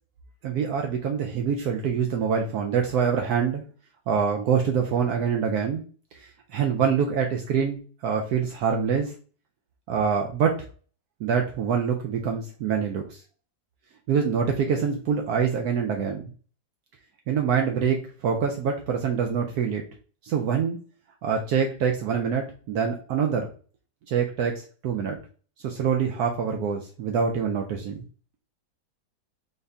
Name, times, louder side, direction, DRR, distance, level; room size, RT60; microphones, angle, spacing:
voice 1, 0.4-3.6 4.1-5.8 6.2-9.1 9.9-10.6 11.2-13.2 14.1-16.3 17.3-18.0 18.2-19.8 20.2-20.8 21.2-23.5 24.1-25.2 25.6-28.0, right 7 dB, 70° right, 1 dB, 1.1 m, -25 dB
4.0 x 2.6 x 3.4 m, 0.39 s
omnidirectional pair, 1.8 m